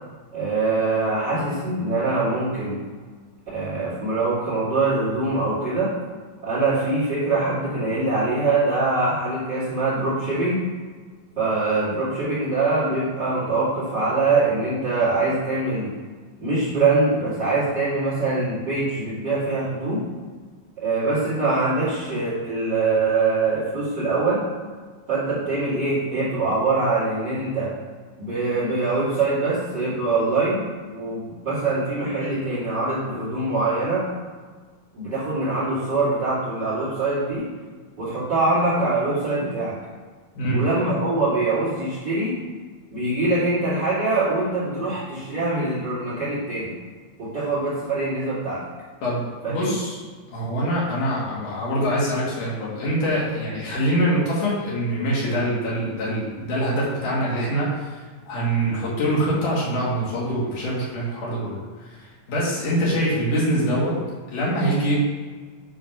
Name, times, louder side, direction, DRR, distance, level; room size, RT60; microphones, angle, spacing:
voice 1, 0.3-2.8 3.5-5.9 6.4-10.6 11.4-15.9 16.4-20.0 20.8-24.4 25.1-27.7 28.2-30.7 30.9-34.0 34.9-37.5 38.0-39.8 40.5-42.4 42.9-46.7 47.2-48.6 49.6-49.7, right 3 dB, 30° right, -11 dB, 3.2 m, -23 dB
voice 2, 49.0-50.0 50.3-64.0 64.3-65.0, equal, 70° left, -6 dB, 3.7 m, -24 dB
10.0 x 4.2 x 5.7 m, 1.5 s
omnidirectional pair, 3.8 m